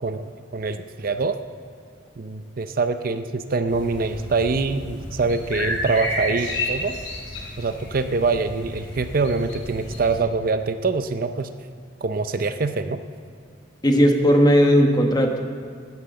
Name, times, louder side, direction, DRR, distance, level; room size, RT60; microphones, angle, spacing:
voice 1, 0.0-1.4 2.2-7.0 7.6-11.5 12.0-13.0, right 4 dB, 50° right, 10 dB, 0.5 m, -24 dB
sound 1, 3.7-10.2, left 1 dB, 80° left, 3.9 m, -32 dB
voice 2, 13.8-15.4, equal, 20° left, 3 dB, 1.2 m, -16 dB
13.0 x 9.3 x 7.7 m, 2.2 s
head